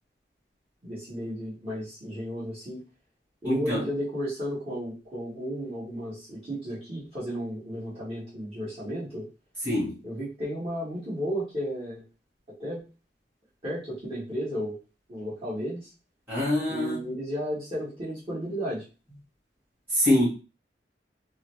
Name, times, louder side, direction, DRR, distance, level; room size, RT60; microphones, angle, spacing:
voice 1, 0.8-2.8 3.4-9.3 10.0-12.0 12.6-12.8 13.6-14.8 15.1-15.9 16.7-18.8, equal, 30° right, -11 dB, 1.5 m, -33 dB
voice 2, 3.4-3.8 9.6-10.0 16.3-17.0 19.9-20.3, left 1 dB, 10° right, -8 dB, 1.8 m, -24 dB
3.8 x 2.0 x 3.2 m, 0.32 s
head